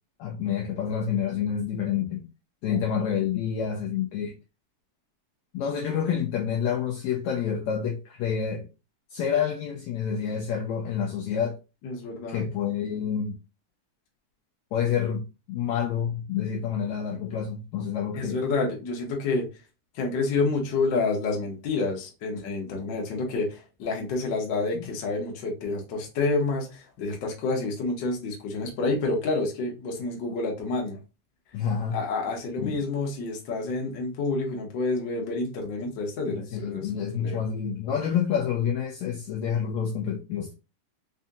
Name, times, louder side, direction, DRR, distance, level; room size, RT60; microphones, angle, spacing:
voice 1, 0.2-2.2 2.6-4.3 5.5-8.7 9.1-11.6 12.3-13.4 14.7-18.4 24.8-24.9 31.5-32.0 32.6-32.8 36.3-40.5, left 8 dB, 90° left, 1.5 m, -28 dB
voice 2, 11.8-12.5 18.1-19.5 19.9-31.0 31.9-36.9 37.2-37.4, left 3 dB, 70° left, 1.0 m, -29 dB
5.3 x 2.7 x 2.3 m
omnidirectional pair, 3.9 m